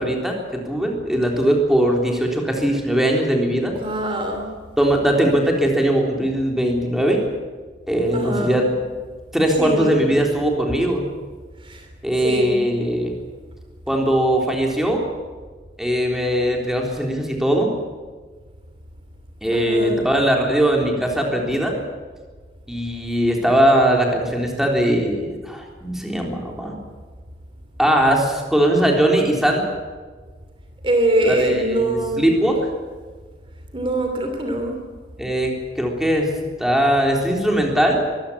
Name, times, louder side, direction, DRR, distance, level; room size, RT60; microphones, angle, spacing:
voice 1, 0.0-3.7 4.8-7.2 7.9-8.7 9.3-11.0 12.0-13.1 13.9-15.0 15.8-17.7 19.4-21.8 22.7-26.8 27.8-29.7 31.2-32.6 35.2-36.3 36.6-38.1, right 1 dB, ahead, 0 dB, 3.7 m, -20 dB
voice 2, 3.8-4.5 8.1-8.6 9.6-10.0 11.7-11.8 12.2-12.6 19.5-20.1 30.8-32.3 33.7-34.7, right 1 dB, 30° right, 4 dB, 2.9 m, -22 dB
23.5 x 16.0 x 8.7 m, 1.5 s
head